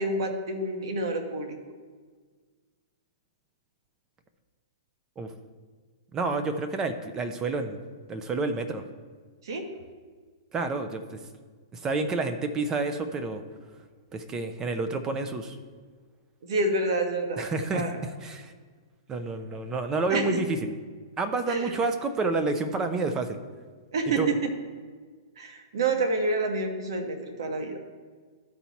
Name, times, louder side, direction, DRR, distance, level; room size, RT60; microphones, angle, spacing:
voice 1, 0.0-1.5 9.4-9.6 16.4-18.0 20.1-20.4 21.5-21.7 23.9-24.2 25.4-27.8, right 2 dB, 70° right, 5 dB, 1.4 m, -28 dB
voice 2, 6.1-7.8 8.1-8.8 10.5-11.0 11.7-13.4 14.1-15.5 17.4-18.5 19.1-20.7 21.2-23.4 24.2-24.3, right 3 dB, 20° right, 8 dB, 0.7 m, -29 dB
12.5 x 4.5 x 4.2 m, 1.5 s
hypercardioid pair, 130°, 3 cm